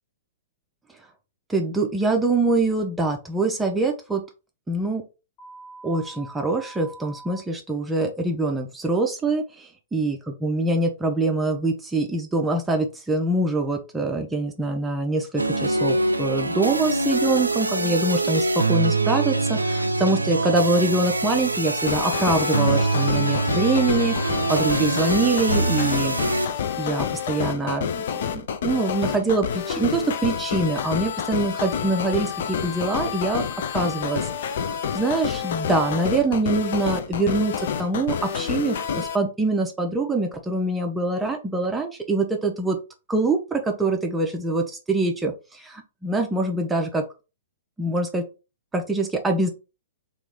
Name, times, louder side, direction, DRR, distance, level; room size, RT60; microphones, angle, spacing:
voice 1, 1.5-4.2 4.7-5.0 5.8-26.5 26.8-33.4 33.7-42.8 43.1-47.0 47.8-48.2 48.7-49.5, right 2 dB, 10° right, 3 dB, 0.6 m, -24 dB
sound 1, 5.4-7.4, right 3 dB, 35° left, 1.0 m, -43 dB
sound 2, 15.4-26.5, right 2 dB, 85° right, 0.4 m, -24 dB
sound 3, 21.9-39.2, left 7 dB, 55° left, 0.4 m, -28 dB
3.0 x 2.5 x 3.5 m, 0.30 s
figure-of-eight pair, 110°, 0 cm